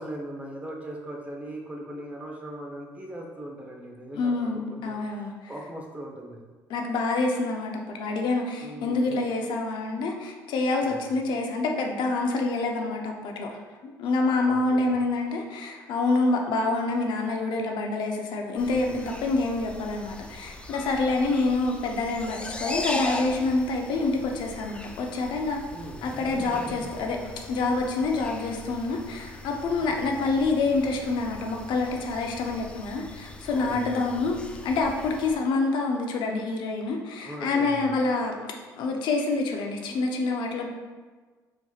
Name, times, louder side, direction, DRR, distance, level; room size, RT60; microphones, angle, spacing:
voice 1, 0.0-6.4 8.6-9.2 10.8-11.2 14.4-15.0 18.7-18.9 25.7-26.1 29.8-30.1 33.5-34.3 37.2-38.0, right 1 dB, 15° right, 0 dB, 0.9 m, -40 dB
voice 2, 4.1-5.3 6.7-25.6 26.0-40.7, left 3 dB, 65° left, 2 dB, 0.6 m, -27 dB
sound 1, 18.6-35.4, left 2 dB, 10° left, 0.4 m, -39 dB
4.6 x 4.1 x 2.4 m, 1.4 s
supercardioid pair, 70°, 8 cm